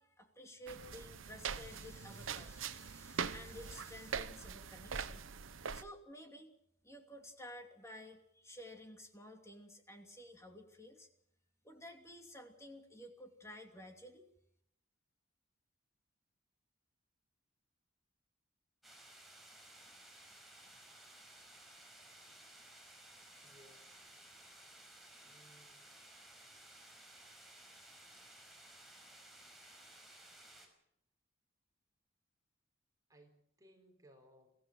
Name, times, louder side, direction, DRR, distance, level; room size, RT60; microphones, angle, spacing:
voice 1, 0.0-5.3 5.7-6.5 6.8-11.1 11.6-14.2, left 1 dB, 15° left, 4 dB, 2.8 m, -53 dB
sound 1, 0.7-5.8, right 6 dB, 75° right, 0.9 m, -43 dB
sound 2, 18.8-30.7, right 1 dB, ahead, 5.0 m, -57 dB
voice 2, 23.4-24.2 25.2-25.8 33.1-34.6, equal, 20° right, 3 dB, 4.1 m, -64 dB
23.5 x 16.0 x 7.8 m, 0.75 s
head